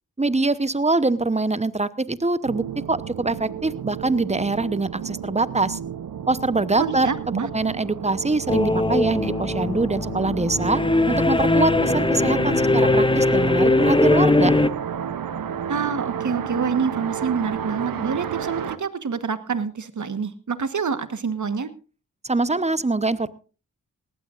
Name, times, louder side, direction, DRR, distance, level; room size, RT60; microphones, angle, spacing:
voice 1, 0.2-5.8 6.3-7.1 7.5-10.8 11.1-14.5 22.2-23.3, right 3 dB, 20° right, 15 dB, 0.9 m, -24 dB
sound 1, 2.4-18.8, right 8 dB, 85° right, 0.8 m, -32 dB
voice 2, 6.8-7.5 15.7-21.7, right 5 dB, 60° right, 12 dB, 1.4 m, -27 dB
sound 2, 8.5-14.7, left 2 dB, 15° left, 0.7 m, -20 dB
19.0 x 15.0 x 2.5 m, 0.35 s
cardioid pair, 40°, 33 cm